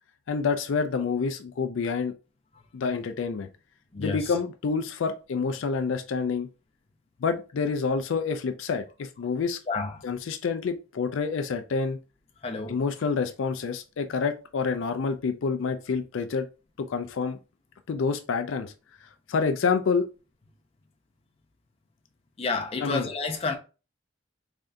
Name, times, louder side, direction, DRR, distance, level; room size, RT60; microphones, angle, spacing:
voice 1, 0.3-2.1 2.7-3.5 4.0-6.5 7.2-9.6 10.0-12.0 12.7-16.5 16.8-17.4 17.9-18.7 19.0-20.1 22.8-23.1, left 5 dB, 75° left, 0.4 m, -28 dB
voice 2, 9.7-10.0 12.4-12.8 22.4-23.6, left 4 dB, 30° left, 0.6 m, -30 dB
3.6 x 3.4 x 2.5 m
head